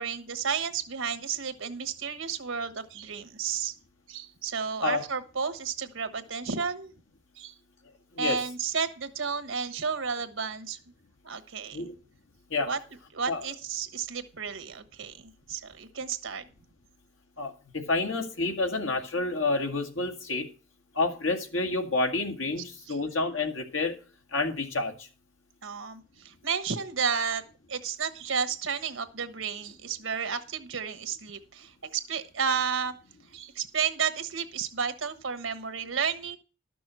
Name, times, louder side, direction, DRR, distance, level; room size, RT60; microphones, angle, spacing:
voice 1, 0.0-3.7 4.1-6.9 7.4-7.5 8.2-10.8 11.2-11.9 12.7-12.8 13.1-16.4 22.9-23.0 25.6-27.4 27.7-32.9 33.3-36.4, right 6 dB, 85° right, 1.3 m, -32 dB
voice 2, 17.4-20.5 21.0-24.0 24.3-24.9, left 3 dB, 80° left, 1.8 m, -29 dB
12.5 x 6.2 x 6.2 m
head